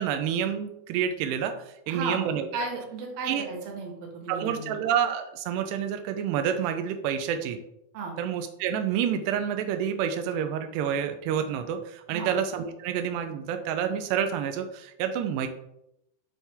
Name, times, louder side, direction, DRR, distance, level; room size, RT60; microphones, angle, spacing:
voice 1, 0.0-2.5 3.2-3.5 4.3-7.6 8.2-15.5, right 8 dB, 90° right, 7 dB, 2.4 m, -28 dB
voice 2, 1.9-4.7 7.9-8.1 12.1-12.3, right 3 dB, 65° right, 1 dB, 2.9 m, -35 dB
11.5 x 4.5 x 3.4 m, 0.81 s
omnidirectional pair, 5.4 m